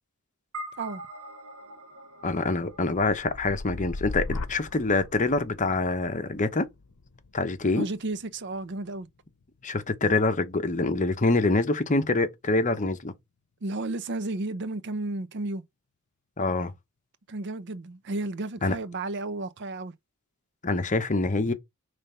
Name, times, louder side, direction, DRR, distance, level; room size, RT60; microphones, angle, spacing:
sound 1, 0.5-5.1, right 1 dB, 80° right, 1.5 m, -45 dB
voice 1, 2.2-6.7 7.3-7.8 9.6-13.1 16.4-16.7 18.6-18.7 20.6-21.5, left 3 dB, 35° left, 0.9 m, -25 dB
sound 2, 2.9-10.7 11.2-11.6, left 2 dB, 85° left, 0.7 m, -40 dB
voice 2, 7.7-9.1 13.6-15.6 17.3-19.9, right 2 dB, 55° right, 0.6 m, -32 dB
5.3 x 3.4 x 5.4 m
head